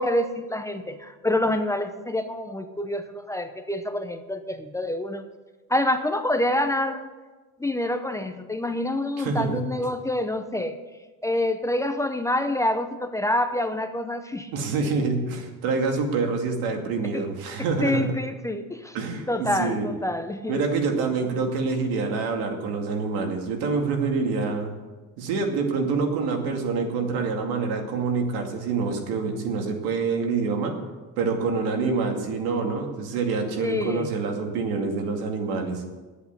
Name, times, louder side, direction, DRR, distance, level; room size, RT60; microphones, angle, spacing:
voice 1, 0.0-5.2 5.7-7.1 7.6-10.8 11.2-14.5 17.1-17.2 17.8-19.0 19.3-20.6 33.6-34.1, left 1 dB, 10° left, 8 dB, 0.6 m, -27 dB
voice 2, 9.2-9.6 14.5-18.2 18.9-19.9 20.5-24.7 25.2-30.7 31.2-35.8, right 4 dB, 80° right, 3 dB, 2.4 m, -26 dB
10.5 x 8.2 x 9.3 m, 1.3 s
cardioid pair, 135°, 35 cm